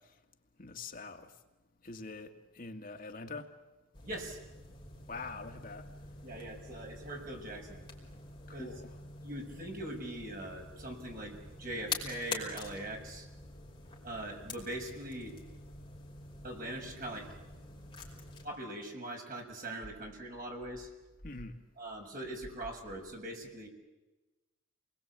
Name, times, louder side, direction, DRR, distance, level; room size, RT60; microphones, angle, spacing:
voice 1, 0.6-1.3 1.8-3.5 5.1-5.9 8.5-8.9 21.2-21.6, left 3 dB, 45° left, 5 dB, 1.9 m, -44 dB
sound 1, 3.9-18.5, left 4 dB, 20° left, 5.0 m, -46 dB
voice 2, 4.0-4.4 6.2-7.8 8.5-8.7 9.2-13.3 14.0-15.3 16.4-17.3 18.4-20.9 21.8-23.7, right 1 dB, 45° right, 2 dB, 6.3 m, -41 dB
29.5 x 21.5 x 8.7 m, 1.1 s
head